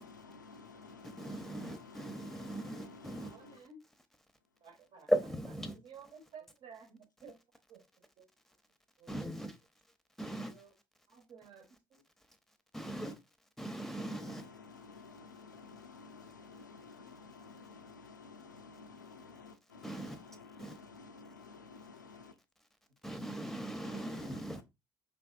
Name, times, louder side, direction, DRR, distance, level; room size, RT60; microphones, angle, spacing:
voice 1, 0.0-3.6 13.0-13.2 13.9-22.4 23.8-24.6, left 4 dB, 85° left, 0.4 m, -53 dB
voice 2, 1.0-3.3 5.1-5.7 9.1-9.5 10.2-10.5 12.7-13.1 13.6-14.4 19.8-20.2 20.6-20.7 23.0-24.6, equal, 5° left, 0.8 m, -38 dB
voice 3, 3.2-3.8 4.6-5.1 5.6-7.4 7.7-8.3 9.0-9.3 10.2-10.7 11.1-12.0 22.0-22.2, right 5 dB, 55° right, 1.1 m, -55 dB
5.2 x 3.4 x 2.4 m
figure-of-eight pair, 50°, 10 cm